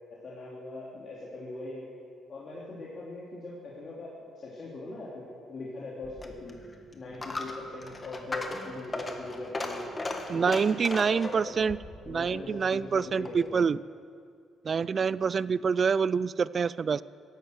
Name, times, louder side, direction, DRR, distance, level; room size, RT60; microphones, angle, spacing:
voice 1, 0.2-1.9 2.3-6.6 6.9-9.8 10.3-10.6 11.0-11.7 12.0-13.6, left 2 dB, 50° left, -6 dB, 2.8 m, -41 dB
Coin (dropping), 6.0-13.5, left 2 dB, 25° left, 1.6 m, -38 dB
voice 2, 10.3-11.8 12.1-13.8 14.6-17.0, right 6 dB, 45° right, 19 dB, 0.3 m, -26 dB
16.0 x 11.5 x 6.4 m, 2.3 s
cardioid pair, 90°, 0 cm